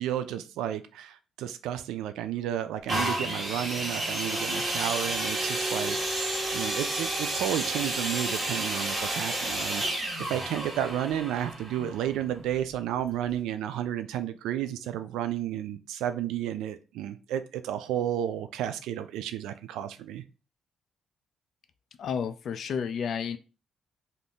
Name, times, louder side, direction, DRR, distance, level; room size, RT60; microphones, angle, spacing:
voice 1, 0.0-20.2, right 11 dB, 90° right, 0.3 m, -32 dB
sound 1, 2.9-12.6 13.3-13.4, right 1 dB, 25° right, 1.2 m, -31 dB
voice 2, 22.0-23.4, left 7 dB, 60° left, 0.4 m, -31 dB
2.6 x 2.5 x 3.4 m
cardioid pair, 90°, 0 cm